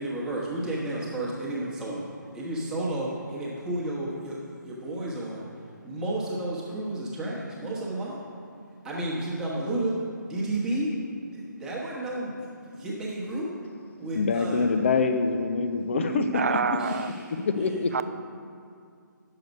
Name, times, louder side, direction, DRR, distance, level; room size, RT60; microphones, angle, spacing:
voice 1, 0.0-2.1 2.3-5.4 5.8-8.2 8.8-9.9 10.2-10.9 11.3-13.5 14.0-14.6 16.8-17.2 17.6-17.8, right 1 dB, 5° right, -6 dB, 1.2 m, -32 dB
voice 2, 14.1-16.8 17.5-18.0, left 4 dB, 35° left, 8 dB, 0.5 m, -25 dB
voice 3, 15.9-17.1 17.9-18.0, right 5 dB, 45° right, 12 dB, 0.4 m, -27 dB
9.1 x 6.7 x 5.3 m, 2.3 s
figure-of-eight pair, 145°, 11 cm